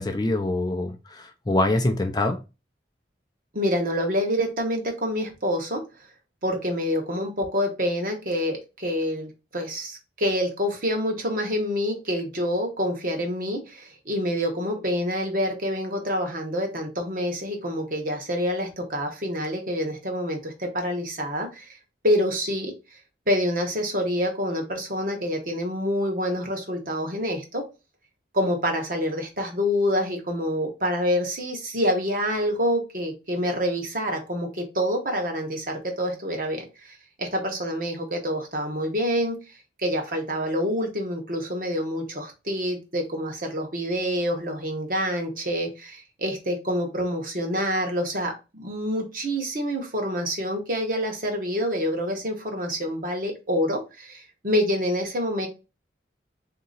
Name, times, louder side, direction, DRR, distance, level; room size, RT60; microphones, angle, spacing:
voice 1, 0.0-2.4, left 2 dB, 25° left, 0.4 m, -25 dB
voice 2, 3.5-5.8 6.4-21.7 22.0-22.7 23.3-27.6 28.3-36.9 37.2-39.4 39.8-55.5, equal, 50° right, 1.2 m, -27 dB
3.8 x 2.9 x 3.9 m
head